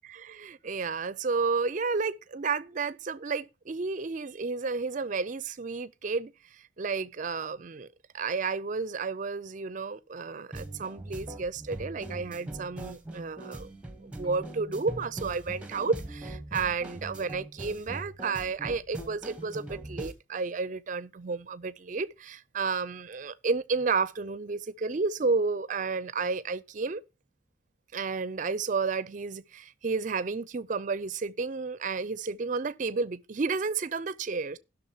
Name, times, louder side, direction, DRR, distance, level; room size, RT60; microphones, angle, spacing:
voice 1, 0.0-7.9 8.1-13.7 14.0-27.0 27.9-34.6, right 4 dB, 40° right, 0.4 m, -32 dB
sound 1, 10.5-20.1, right 1 dB, 5° right, 1.0 m, -41 dB
Keyboard (musical), 14.2-16.1, right 1 dB, 85° left, 5.0 m, -48 dB
17.0 x 6.1 x 2.8 m
head